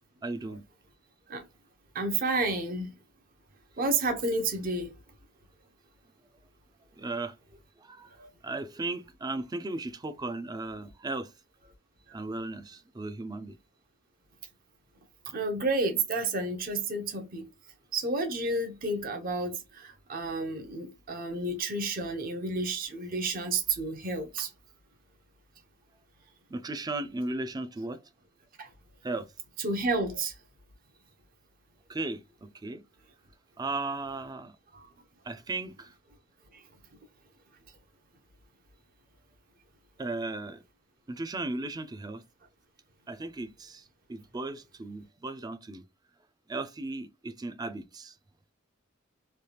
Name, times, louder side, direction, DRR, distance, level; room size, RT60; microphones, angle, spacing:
voice 1, 0.2-0.6 7.0-7.4 7.8-8.1 8.4-11.3 12.1-13.6 26.5-28.0 29.0-29.3 31.9-32.8 33.6-34.5 35.2-35.9 40.0-40.6 41.1-42.2 43.1-45.8 46.5-48.1, right 2 dB, 20° right, 0.4 m, -36 dB
voice 2, 1.9-2.9 3.8-4.9 8.1-8.3 12.1-12.2 15.2-17.5 17.9-24.5 28.6-28.7 29.6-30.4 34.7-34.9 36.5-36.6, right 2 dB, 45° right, 0.7 m, -31 dB
3.3 x 2.4 x 2.8 m
head